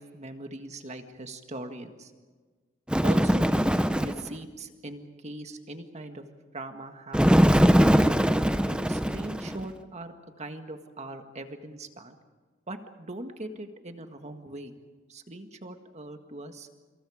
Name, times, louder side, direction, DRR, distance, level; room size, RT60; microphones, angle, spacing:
voice 1, 0.0-2.1 3.0-6.3 6.5-7.6 8.7-12.2 12.7-14.7 15.1-16.7, right 1 dB, 35° right, 6 dB, 1.8 m, -40 dB
Bird, 2.9-4.3 7.1-9.7, equal, 5° right, 0.8 m, -21 dB
27.5 x 26.5 x 5.0 m, 1.4 s
head